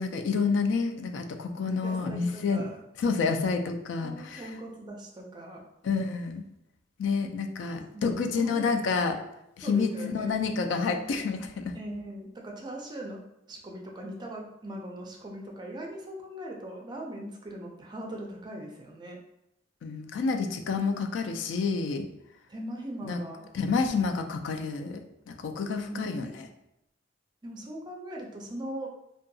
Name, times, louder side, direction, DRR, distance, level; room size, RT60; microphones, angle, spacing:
voice 1, 0.0-2.7 3.0-4.4 5.8-6.4 7.0-9.2 9.6-11.7 19.8-22.1 23.1-23.2 23.5-26.5, left 4 dB, 80° left, 6 dB, 0.3 m, -29 dB
voice 2, 1.6-2.8 4.0-5.6 7.9-8.0 8.4-8.8 9.6-10.3 11.7-13.2 13.5-19.2 22.5-23.5 25.7-26.4 27.4-28.9, right 1 dB, 25° right, -1 dB, 0.4 m, -40 dB
2.7 x 2.2 x 2.6 m, 0.81 s
head